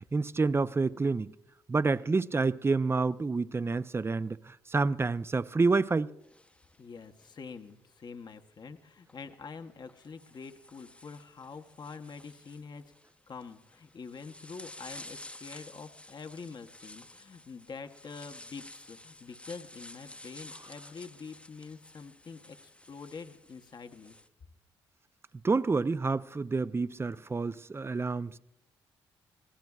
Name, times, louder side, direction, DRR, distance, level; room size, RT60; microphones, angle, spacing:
voice 1, 0.1-1.3 1.7-6.1 25.4-28.4, right 4 dB, 25° right, 0.5 m, -28 dB
sound 1, 6.2-7.7 9.0-9.1 9.9-24.3, left 1 dB, 10° left, 0.8 m, -52 dB
voice 2, 6.8-12.9 13.3-24.2, left 5 dB, 45° left, 0.9 m, -46 dB
24.0 x 17.0 x 2.3 m
supercardioid pair, 50°, 10 cm